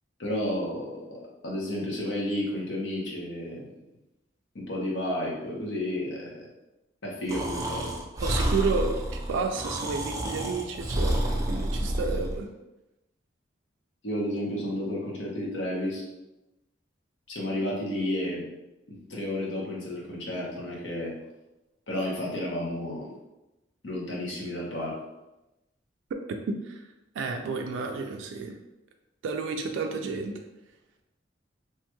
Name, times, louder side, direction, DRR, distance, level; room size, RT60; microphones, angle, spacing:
voice 1, 0.2-1.1 1.4-3.7 4.5-6.3 7.0-7.9 14.0-16.0 17.3-18.4 18.9-21.1 21.9-23.1 23.8-24.9, left 1 dB, 75° left, -3 dB, 0.9 m, -31 dB
Breathing, 7.3-12.4, right 1 dB, 20° right, 0.4 m, -29 dB
voice 2, 8.2-9.0 9.3-12.5 26.5-26.8 27.1-28.6 29.2-30.4, right 4 dB, 90° right, 4 dB, 0.3 m, -31 dB
3.1 x 2.2 x 2.9 m, 0.99 s
head